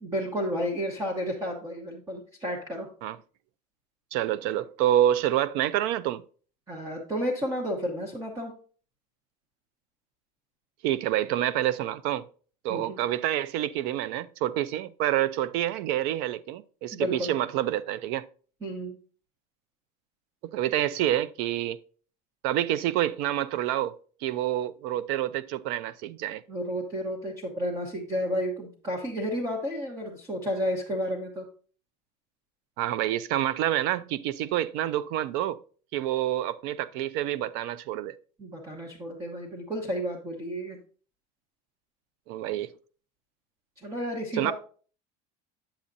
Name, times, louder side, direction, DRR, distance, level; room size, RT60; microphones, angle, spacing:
voice 1, 0.0-2.9 6.7-8.5 12.7-13.0 16.9-17.3 18.6-19.0 26.5-31.4 38.4-40.8 43.8-44.5, equal, 20° right, 1.1 m, -31 dB
voice 2, 4.1-6.2 10.8-12.2 12.6-18.3 20.5-21.8 22.4-26.4 32.8-35.6 35.9-38.1 42.3-42.7 44.3-44.5, right 12 dB, 60° right, 0.4 m, -27 dB
8.6 x 7.3 x 2.6 m
cardioid pair, 165°, 18 cm